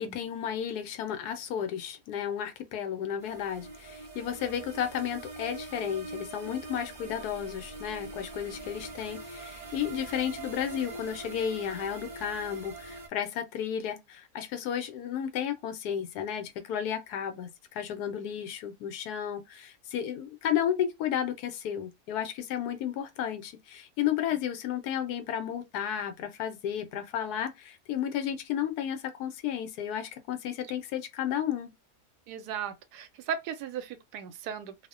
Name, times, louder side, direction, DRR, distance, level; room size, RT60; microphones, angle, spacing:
voice 1, 0.0-31.7, left 9 dB, 80° left, 1.1 m, -33 dB
sound 1, 3.2-13.1, right 2 dB, 55° right, 0.3 m, -43 dB
voice 2, 32.3-34.7, right 8 dB, 85° right, 1.1 m, -36 dB
2.7 x 2.0 x 2.4 m
omnidirectional pair, 1.7 m